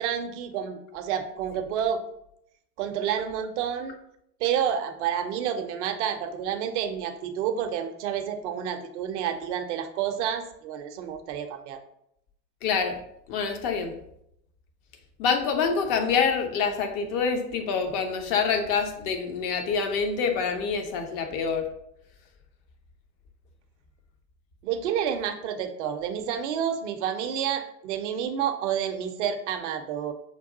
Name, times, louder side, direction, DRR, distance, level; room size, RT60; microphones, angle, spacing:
voice 1, 0.0-2.0 2.8-3.9 4.4-11.8 24.6-30.1, right 8 dB, 45° right, 7 dB, 0.5 m, -29 dB
voice 2, 12.6-13.0 13.3-14.0 15.2-21.7, left 5 dB, 30° left, 5 dB, 0.5 m, -26 dB
5.9 x 2.3 x 2.6 m, 0.76 s
figure-of-eight pair, 80°, 50 cm